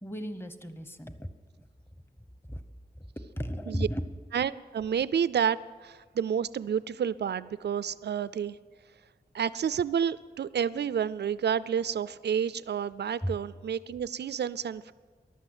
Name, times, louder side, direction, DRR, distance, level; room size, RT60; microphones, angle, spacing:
voice 1, 0.0-1.3 2.5-2.6 3.4-4.0 13.2-13.4, equal, 15° left, 10 dB, 1.0 m, -34 dB
voice 2, 4.3-8.6 9.3-14.9, right 8 dB, 85° right, 17 dB, 0.4 m, -30 dB
15.0 x 11.5 x 8.0 m, 1.5 s
wide cardioid pair, 100°, 17 cm